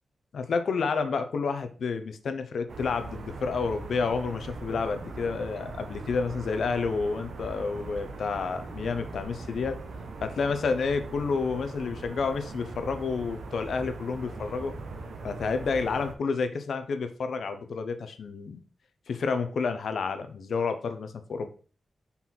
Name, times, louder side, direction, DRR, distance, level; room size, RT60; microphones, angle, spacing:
voice 1, 0.3-9.8 10.2-14.8 15.2-18.6 19.1-21.5, left 5 dB, 75° left, 9 dB, 0.8 m, -30 dB
sound 1, 2.7-16.1, right 3 dB, 75° right, 1.0 m, -40 dB
5.6 x 4.1 x 4.4 m, 0.41 s
wide cardioid pair, 105°, 0 cm